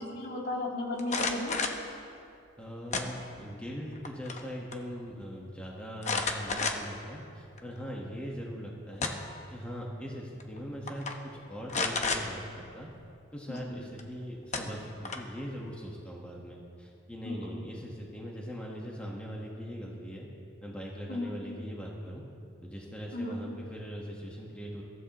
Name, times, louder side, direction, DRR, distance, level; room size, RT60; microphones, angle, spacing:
voice 1, 0.0-1.5 13.5-13.8 17.2-17.6 21.1-21.4 23.1-23.4, left 2 dB, 55° left, -3 dB, 2.7 m, -35 dB
sound 1, 1.0-1.8 2.9-3.5 3.9-4.5 4.7-4.8 6.0-7.0 7.6-7.7 8.7-9.4 10.4-10.6 10.9-11.1 11.7-12.2 14.0-14.1 14.5-15.4, left 4 dB, 35° left, 1.0 m, -32 dB
voice 2, 2.6-9.1 9.5-12.9 13.3-20.3 20.6-22.2 22.6-24.8, equal, 5° left, -3 dB, 1.4 m, -41 dB
22.5 x 14.0 x 3.1 m, 2.4 s
head